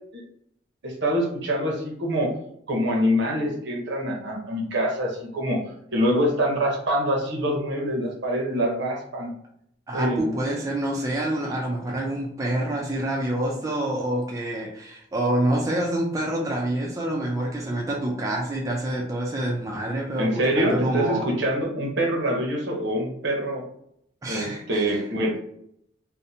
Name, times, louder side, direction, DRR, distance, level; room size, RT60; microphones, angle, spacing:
voice 1, 0.8-2.3 2.7-5.6 5.9-9.3 9.9-10.3 20.2-23.6 24.3-25.4, equal, 65° right, -1 dB, 0.8 m, -25 dB
voice 2, 9.9-21.3 24.2-25.0, right 1 dB, 15° right, -2 dB, 0.3 m, -27 dB
2.7 x 2.1 x 2.7 m, 0.70 s
head